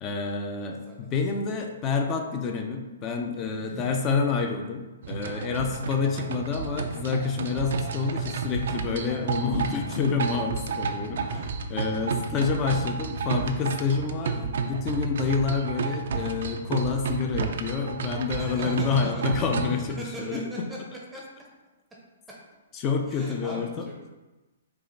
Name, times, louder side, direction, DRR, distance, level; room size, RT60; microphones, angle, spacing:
voice 1, 0.0-11.4 11.7-20.7 22.7-23.8, left 5 dB, 25° left, 4 dB, 0.5 m, -28 dB
voice 2, 0.5-1.1 3.4-3.9 9.7-10.4 11.3-11.5 12.0-12.1 18.4-19.3 19.9-20.8 21.1-21.2 22.3-22.4 23.1-24.1, right 1 dB, 5° right, -4 dB, 0.7 m, -41 dB
sound 1, 5.0-19.9, right 5 dB, 65° right, 0.4 m, -31 dB
4.7 x 2.5 x 3.9 m, 1.1 s
hypercardioid pair, 145°, 0 cm